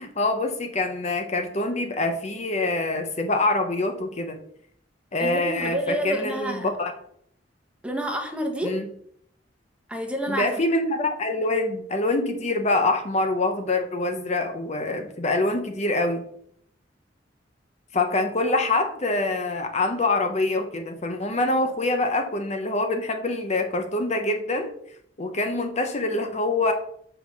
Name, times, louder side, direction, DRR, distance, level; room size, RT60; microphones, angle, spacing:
voice 1, 0.0-4.4 5.1-6.9 8.6-8.8 10.3-16.2 17.9-24.7 25.2-26.7, left 2 dB, 40° left, 6 dB, 0.9 m, -25 dB
voice 2, 5.2-6.7 7.8-8.8 9.9-10.6, equal, 5° right, 3 dB, 1.2 m, -29 dB
5.6 x 5.6 x 6.3 m, 0.66 s
head